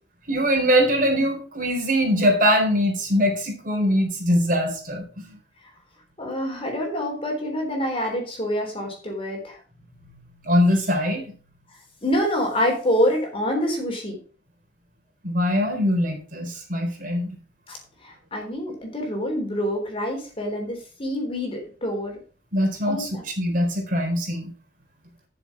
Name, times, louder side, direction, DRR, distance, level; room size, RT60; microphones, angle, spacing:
voice 1, 0.3-5.2 10.4-11.2 15.2-17.4 22.5-24.5, equal, 50° right, 1 dB, 4.3 m, -22 dB
voice 2, 6.2-9.6 12.0-14.2 17.7-22.2 22.9-23.2, equal, 30° left, 1 dB, 3.6 m, -26 dB
12.0 x 7.1 x 4.8 m, 0.38 s
head